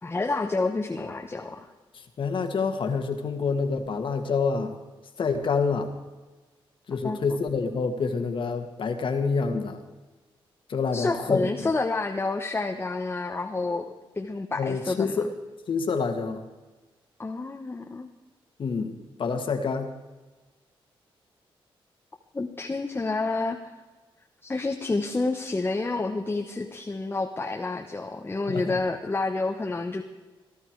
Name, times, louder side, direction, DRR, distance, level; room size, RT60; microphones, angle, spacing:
voice 1, 0.0-1.7 7.0-7.2 10.9-13.8 14.1-15.2 17.2-18.1 22.3-23.7 24.4-30.0, left 3 dB, 25° left, 3 dB, 1.2 m, -29 dB
voice 2, 2.2-4.7 5.2-5.9 6.9-9.8 10.7-11.5 14.6-15.3 15.7-16.4 18.6-19.9 28.5-28.8, left 5 dB, 60° left, 6 dB, 2.0 m, -27 dB
18.5 x 12.5 x 4.8 m, 1.2 s
cardioid pair, 90°, 10 cm